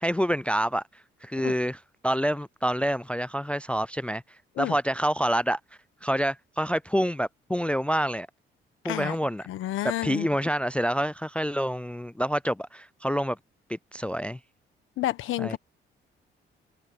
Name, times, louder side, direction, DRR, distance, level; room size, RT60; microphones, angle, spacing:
voice 1, 0.0-4.2 4.6-5.6 6.0-8.3 8.8-9.4 10.0-13.4 13.7-14.4 15.4-15.6, equal, 5° left, 0.3 m, -27 dB
voice 2, 9.5-10.3 15.0-15.6, left 15 dB, 85° left, 1.4 m, -30 dB
cardioid pair, 90°, 20 cm